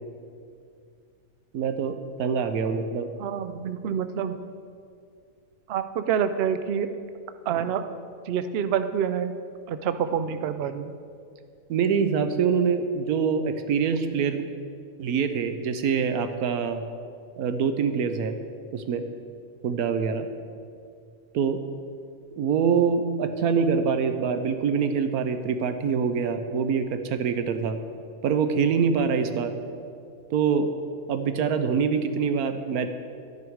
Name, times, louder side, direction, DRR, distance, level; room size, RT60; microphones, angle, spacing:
voice 1, 1.5-3.1 11.7-14.5 15.0-16.8 17.4-18.4 18.7-19.0 19.6-20.3 21.3-21.6 22.4-27.8 28.2-29.5 30.3-30.7 31.1-32.9, right 6 dB, 80° right, 8 dB, 1.2 m, -25 dB
voice 2, 3.2-4.4 5.7-6.9 7.5-7.8 8.3-9.4 9.7-11.0, right 8 dB, 65° right, 10 dB, 0.6 m, -27 dB
11.5 x 9.7 x 4.7 m, 2.3 s
omnidirectional pair, 1.6 m